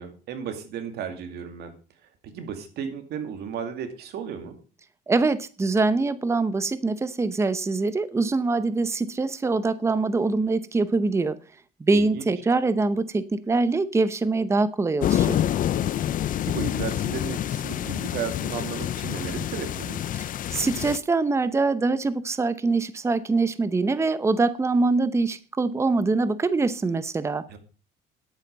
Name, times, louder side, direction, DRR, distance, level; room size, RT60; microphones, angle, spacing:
voice 1, 0.0-1.7 2.2-4.6 11.9-12.3 16.4-20.1 27.5-27.6, right 7 dB, 75° right, 7 dB, 2.5 m, -34 dB
voice 2, 5.1-11.4 11.8-15.4 20.5-27.4, right 3 dB, 15° right, 14 dB, 0.7 m, -24 dB
sound 1, 15.0-21.0, left 11 dB, 55° left, 0.6 m, -27 dB
10.5 x 8.7 x 5.3 m, 0.37 s
cardioid pair, 110°, 17 cm